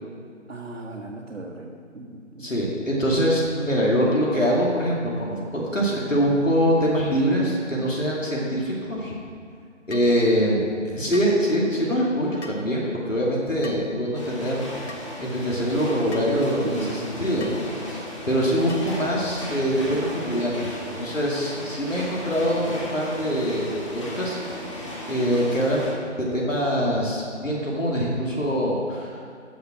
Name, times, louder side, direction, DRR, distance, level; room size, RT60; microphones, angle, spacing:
voice 1, 0.5-2.6 16.6-16.9, right 2 dB, 70° right, -2 dB, 1.3 m, -36 dB
voice 2, 2.4-9.1 9.9-17.6 17.8-18.0 18.3-23.7 23.9-24.4 25.1-29.2, equal, 80° left, -3 dB, 2.6 m, -24 dB
sound 1, 9.9-10.1 11.1-11.4 12.4-12.7 13.6-13.9 14.9-15.1 16.1-16.3 17.4-17.6 18.7-19.0, left 2 dB, 65° left, 1.2 m, -41 dB
sound 2, 14.1-25.9, left 1 dB, 25° left, 1.5 m, -36 dB
14.0 x 5.3 x 6.1 m, 2.2 s
figure-of-eight pair, 160°, 38 cm